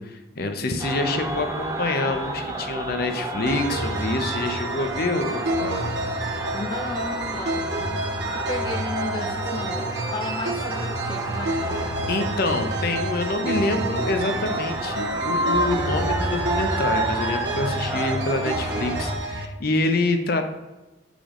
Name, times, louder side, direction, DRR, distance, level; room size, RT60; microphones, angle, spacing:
voice 1, 0.0-5.9 12.1-20.4, left 2 dB, 55° left, 6 dB, 0.7 m, -26 dB
sound 1, 0.8-19.2, right 1 dB, 20° right, 0.7 m, -30 dB
sound 2, 3.5-19.5, right 2 dB, 65° right, 0.8 m, -29 dB
voice 2, 6.5-7.8 8.3-11.9, left 2 dB, 25° left, 4 dB, 0.3 m, -33 dB
6.9 x 5.0 x 3.7 m, 1.1 s
head